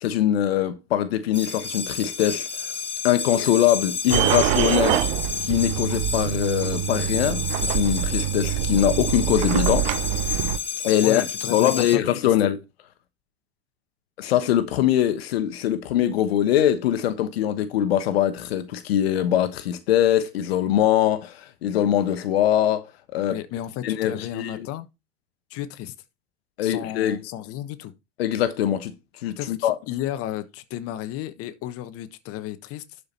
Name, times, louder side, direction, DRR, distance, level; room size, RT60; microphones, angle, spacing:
voice 1, 0.0-2.7 3.0-5.0 5.4-9.9 10.8-11.2 11.5-12.6 14.2-23.4 23.8-24.7 26.6-27.2 28.2-28.9 29.2-29.8, left 11 dB, 70° left, 1.2 m, -22 dB
sound 1, 1.3-11.9, left 6 dB, 15° left, 2.6 m, -31 dB
sound 2, 4.1-10.6, right 14 dB, 55° right, 0.9 m, -25 dB
voice 2, 10.9-12.3 23.3-24.9 25.5-25.9 26.6-27.9 29.4-33.0, left 12 dB, 45° left, 1.3 m, -33 dB
11.5 x 5.0 x 4.2 m
hypercardioid pair, 80°, 32 cm